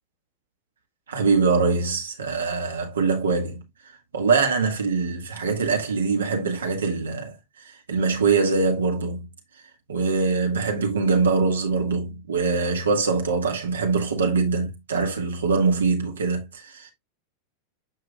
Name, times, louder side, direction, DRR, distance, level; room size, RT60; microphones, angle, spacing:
voice 1, 1.1-3.6 4.1-9.3 9.9-16.9, right 4 dB, 70° right, 1.8 m, -23 dB
7.7 x 5.6 x 2.4 m
figure-of-eight pair, 90°, 0 cm